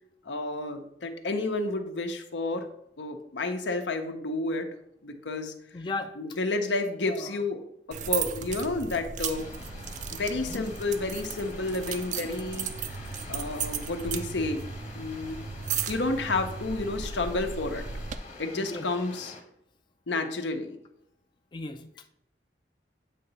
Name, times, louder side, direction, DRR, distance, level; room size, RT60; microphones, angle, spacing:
voice 1, 0.3-2.7 3.0-4.7 5.0-5.5 6.2-7.6 7.9-9.5 10.1-13.0 13.3-14.7 14.9-15.4 15.9-17.8 18.4-19.4 20.1-20.8, left 2 dB, 90° left, 6 dB, 0.8 m, -30 dB
voice 2, 5.7-6.2 7.0-7.4 10.5-10.6 18.6-18.8 21.5-22.1, left 3 dB, 25° left, 7 dB, 0.4 m, -36 dB
sound 1, 7.9-18.2, right 7 dB, 45° right, 0.4 m, -35 dB
sound 2, 9.3-19.4, left 2 dB, 40° left, 1.2 m, -46 dB
8.4 x 2.9 x 5.4 m, 0.77 s
head